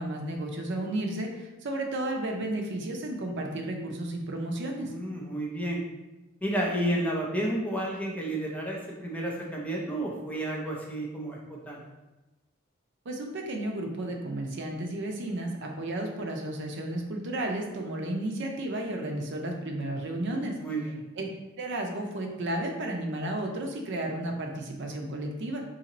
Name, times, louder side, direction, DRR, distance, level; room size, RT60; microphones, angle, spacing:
voice 1, 0.0-4.9 13.1-20.6 21.2-25.6, right 1 dB, 60° right, 2 dB, 0.5 m, -33 dB
voice 2, 4.9-5.8 6.4-11.8 20.6-20.9, right 1 dB, 5° left, -3 dB, 0.5 m, -31 dB
2.9 x 2.7 x 3.9 m, 1.0 s
head